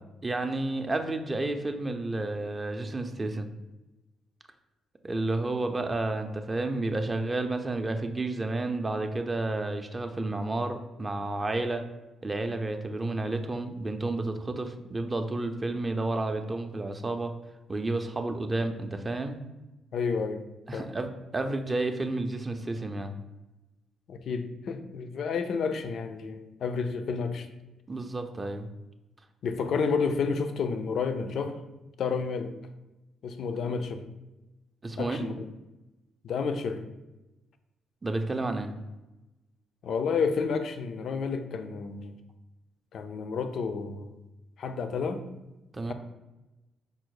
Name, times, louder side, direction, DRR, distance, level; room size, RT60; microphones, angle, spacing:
voice 1, 0.2-3.5 5.0-11.8 12.2-17.3 17.7-19.4 20.7-23.1 27.9-28.7 34.8-35.3 38.0-38.7 45.7-45.9, right 2 dB, 25° right, 6 dB, 0.4 m, -31 dB
voice 2, 19.9-20.4 20.7-20.9 24.1-27.5 29.4-31.6 32.0-32.5 33.2-34.0 35.0-35.5 36.2-36.8 39.8-42.2 42.9-44.1 44.6-45.2 45.9-46.0, left 5 dB, 65° left, 8 dB, 0.4 m, -30 dB
5.2 x 2.1 x 4.6 m, 1.0 s
cardioid pair, 90°, 0 cm